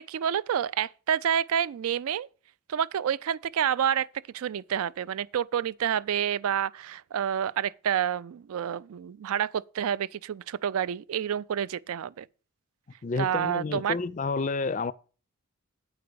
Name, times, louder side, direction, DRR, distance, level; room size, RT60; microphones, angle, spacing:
voice 1, 0.0-2.3 2.7-4.1 4.3-12.3 13.2-14.0, right 9 dB, 75° right, 0.3 m, -28 dB
voice 2, 13.0-14.9, left 4 dB, 35° left, 0.4 m, -30 dB
8.6 x 4.9 x 6.7 m
head